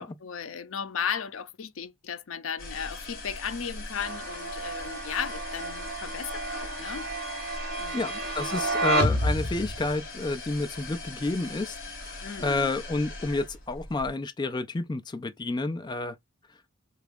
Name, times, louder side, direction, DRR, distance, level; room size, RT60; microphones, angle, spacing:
voice 1, 0.0-7.4 7.8-8.1 12.2-12.7, left 7 dB, 85° left, 0.5 m, -36 dB
sound 1, 2.6-14.1, left 2 dB, 45° left, 1.5 m, -41 dB
sound 2, 4.0-9.9, right 2 dB, 55° right, 1.0 m, -30 dB
voice 2, 7.9-11.8 12.0-16.1, left 3 dB, 20° left, 0.3 m, -30 dB
3.4 x 2.4 x 3.4 m
head